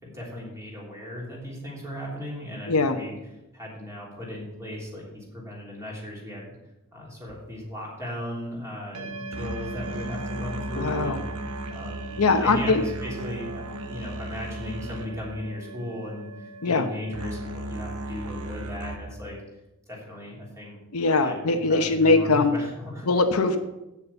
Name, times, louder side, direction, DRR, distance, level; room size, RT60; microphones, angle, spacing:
voice 1, 0.0-3.2 3.5-6.5 6.9-11.2 11.7-19.3 19.9-20.8 21.2-23.1, left 1 dB, 15° right, -4 dB, 3.3 m, -37 dB
voice 2, 2.7-3.0 10.8-11.2 12.2-12.8 16.6-16.9 20.9-22.5 23.1-23.6, left 3 dB, 75° left, 6 dB, 0.9 m, -21 dB
sound 1, 7.3-7.4 8.9-19.0, right 1 dB, 75° right, 1.1 m, -36 dB
8.4 x 7.0 x 7.2 m, 0.94 s
head